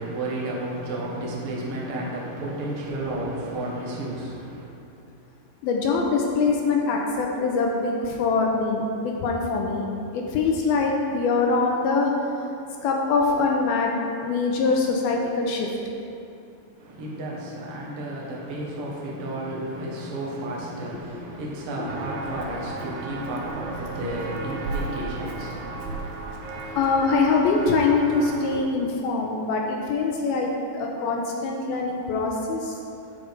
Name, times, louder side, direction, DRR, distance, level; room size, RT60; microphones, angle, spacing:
voice 1, 0.0-4.7 16.8-26.1, right 1 dB, 55° right, -4 dB, 1.6 m, -32 dB
voice 2, 5.6-9.9 10.1-12.3 12.8-13.9 14.2-15.7 26.8-32.8, left 4 dB, 80° left, 0 dB, 2.4 m, -23 dB
Walk footsteps, 21.9-28.6, right 3 dB, 75° right, 1.8 m, -34 dB
13.5 x 5.1 x 4.8 m, 2.6 s
omnidirectional pair, 4.8 m